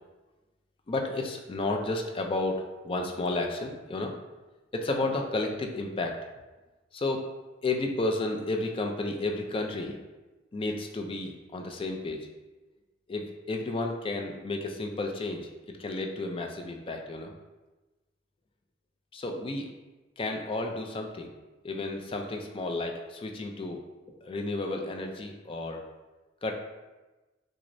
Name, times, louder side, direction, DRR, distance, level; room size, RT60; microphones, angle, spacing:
voice 1, 0.9-4.2 4.7-6.2 6.9-7.3 7.6-10.0 10.5-12.3 13.1-15.5 15.8-17.3 19.1-19.7 20.2-21.3 21.6-23.8 24.2-25.9 26.4-26.5, left 2 dB, 25° left, 3 dB, 0.3 m, -32 dB
6.0 x 2.0 x 2.6 m, 1.1 s
head